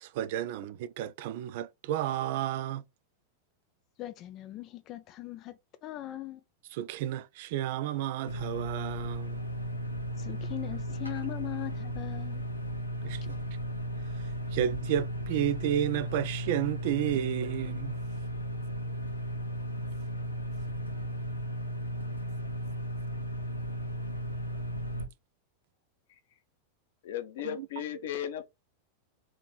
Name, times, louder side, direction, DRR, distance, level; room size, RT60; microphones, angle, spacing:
voice 1, 0.0-2.8 6.7-9.4 13.0-13.4 14.5-18.0 27.4-27.7, right 11 dB, 50° right, 0.4 m, -32 dB
voice 2, 4.0-6.4 10.2-12.4, left 15 dB, 35° left, 0.4 m, -40 dB
sound 1, 8.2-25.1, equal, 85° left, 0.8 m, -35 dB
voice 3, 27.0-28.4, left 10 dB, 55° left, 0.8 m, -35 dB
4.1 x 3.0 x 3.9 m
figure-of-eight pair, 90°, 0 cm